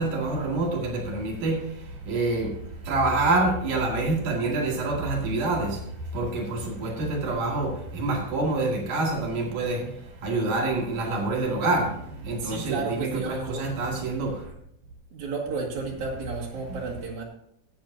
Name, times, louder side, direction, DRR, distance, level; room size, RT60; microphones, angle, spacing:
voice 1, 0.0-1.7 2.1-2.5 2.8-5.8 6.1-14.4, right 2 dB, 85° right, -1 dB, 3.8 m, -27 dB
voice 2, 12.4-13.7 15.1-17.2, right 4 dB, 70° right, -2 dB, 3.6 m, -32 dB
18.5 x 8.6 x 2.8 m, 0.75 s
omnidirectional pair, 3.5 m